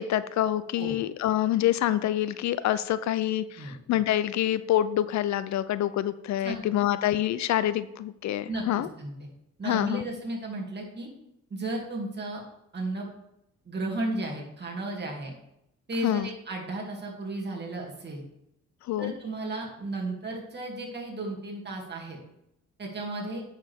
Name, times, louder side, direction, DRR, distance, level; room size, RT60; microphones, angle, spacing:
voice 1, 0.0-8.9 9.6-10.0 16.0-16.3 18.9-19.1, left 12 dB, 65° left, 15 dB, 0.5 m, -26 dB
voice 2, 8.5-9.3 9.6-11.1 11.5-12.4 12.7-13.1 13.6-15.3 15.9-18.2 19.0-22.2 22.8-23.4, right 2 dB, 35° right, -1 dB, 2.6 m, -34 dB
9.2 x 6.6 x 3.6 m, 0.82 s
cardioid pair, 90°, 30 cm